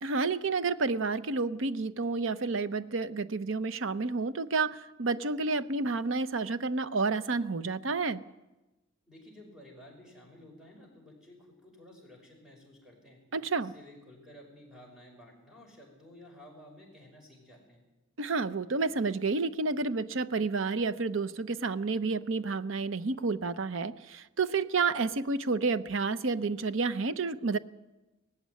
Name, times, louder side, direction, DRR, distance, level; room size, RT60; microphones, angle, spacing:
voice 1, 0.0-8.2 13.3-13.7 18.2-27.6, right 4 dB, 70° right, 14 dB, 0.7 m, -30 dB
voice 2, 9.1-13.2 13.6-17.8, left 1 dB, 5° right, -1 dB, 5.9 m, -53 dB
18.5 x 15.0 x 9.5 m, 1.0 s
head